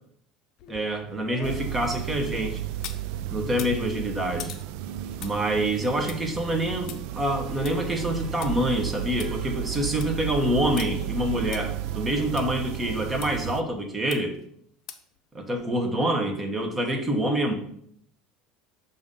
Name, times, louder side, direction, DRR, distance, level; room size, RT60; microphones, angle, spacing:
sound 1, 0.6-3.1 3.5-8.5 8.9-9.0 9.2-9.3 9.7-10.2 10.8-10.9 11.5-11.6 12.4-12.5 13.2-13.3 14.1-14.4 14.9-15.2 15.6-15.7, left 9 dB, 60° left, 0.6 m, -43 dB
voice 1, 0.7-2.6 3.3-4.5 5.2-14.4 15.3-17.5, right 1 dB, 20° right, 4 dB, 1.1 m, -26 dB
sound 2, 1.4-13.6, right 13 dB, 75° right, 0.3 m, -33 dB
sound 3, 7.2-13.2, right 3 dB, 45° right, 0.9 m, -47 dB
6.7 x 2.7 x 5.4 m, 0.67 s
supercardioid pair, 100°, 0 cm